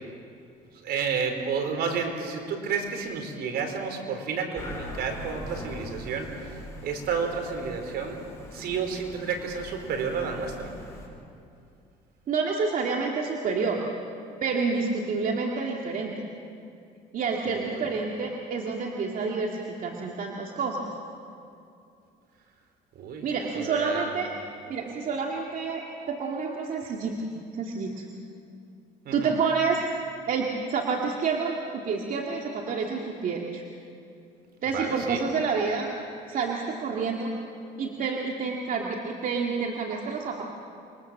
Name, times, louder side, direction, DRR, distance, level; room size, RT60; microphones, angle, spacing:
voice 1, 0.8-6.5 6.8-8.2 8.5-10.7 17.4-17.9 23.0-23.2 23.5-24.1 29.0-29.3 34.7-35.2, right 5 dB, 70° right, 5 dB, 4.3 m, -31 dB
sound 1, 4.5-11.1, equal, 15° left, 6.3 m, -41 dB
voice 2, 12.3-13.8 14.4-16.1 17.1-20.9 23.2-24.3 24.7-28.1 29.1-29.9 30.3-33.6 34.6-35.9 36.3-37.3 37.8-40.4, right 5 dB, 55° right, 0 dB, 2.5 m, -28 dB
27.0 x 23.0 x 7.5 m, 2.6 s
cardioid pair, 110°, 17 cm